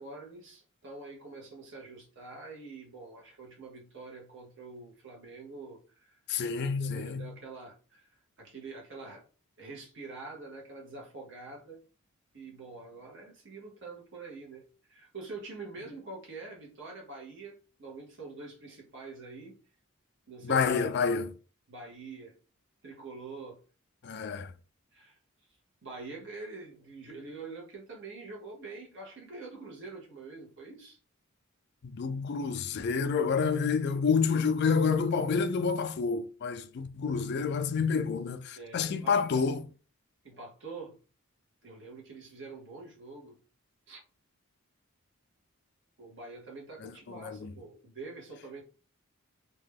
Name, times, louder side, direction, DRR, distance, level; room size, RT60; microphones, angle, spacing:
voice 1, 0.0-6.2 6.5-9.2 9.6-11.8 12.3-19.6 20.3-20.7 21.7-22.3 22.8-23.6 24.9-25.2 25.8-31.0 38.6-39.6 40.2-41.0 41.6-43.4 43.9-44.0 46.0-48.6, right 3 dB, 60° right, 1.1 m, -45 dB
voice 2, 6.3-7.3 20.4-21.3 24.0-24.5 31.8-39.6 46.8-47.5, left 5 dB, 50° left, 0.4 m, -29 dB
2.8 x 2.3 x 3.4 m
head